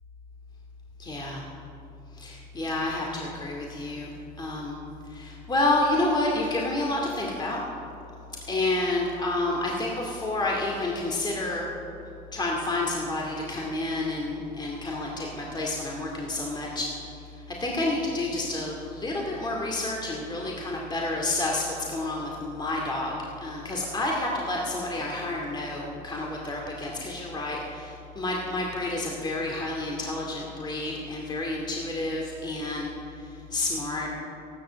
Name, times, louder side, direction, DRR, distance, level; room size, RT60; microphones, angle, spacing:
voice 1, 1.0-1.4 2.2-4.1 4.4-4.8 5.1-7.6 8.5-11.7 12.3-16.9 17.6-32.9 33.5-34.2, left 2 dB, 25° left, -2 dB, 2.3 m, -29 dB
14.5 x 12.5 x 7.5 m, 2.7 s
cardioid pair, 110°, 17 cm